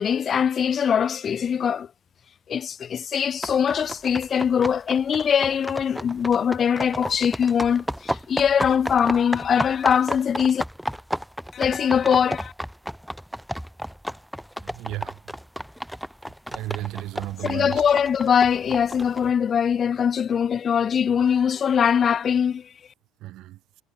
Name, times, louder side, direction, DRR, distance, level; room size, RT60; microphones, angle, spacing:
voice 1, 0.0-1.9 2.5-10.6 11.5-12.5 17.4-22.7, left 7 dB, 35° left, 0.4 m, -22 dB
sound 1, 3.4-19.3, equal, ahead, 2.2 m, -32 dB
voice 2, 14.6-15.1 16.5-17.8 23.2-23.6, right 16 dB, 65° right, 0.7 m, -33 dB
cardioid pair, 115°, 0 cm